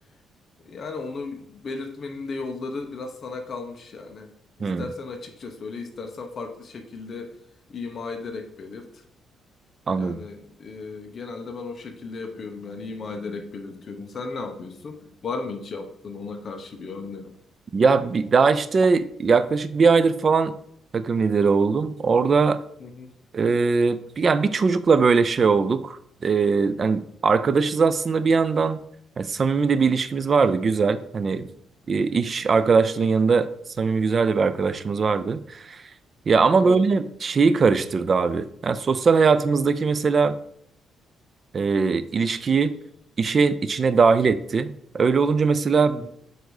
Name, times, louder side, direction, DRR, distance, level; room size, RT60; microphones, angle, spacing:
voice 1, 0.6-4.3 4.6-7.3 7.7-9.0 10.0-17.4 22.8-23.1 36.6-37.0 45.8-46.1, left 4 dB, 35° left, 5 dB, 0.8 m, -35 dB
voice 2, 9.9-10.2 17.7-20.5 20.9-22.6 23.3-28.8 29.2-31.5 31.9-33.5 33.8-35.8 36.3-40.3 41.5-42.8 43.2-44.7 44.9-46.1, right 5 dB, 30° right, 14 dB, 0.3 m, -20 dB
7.9 x 2.6 x 4.7 m, 0.70 s
cardioid pair, 165°, 0 cm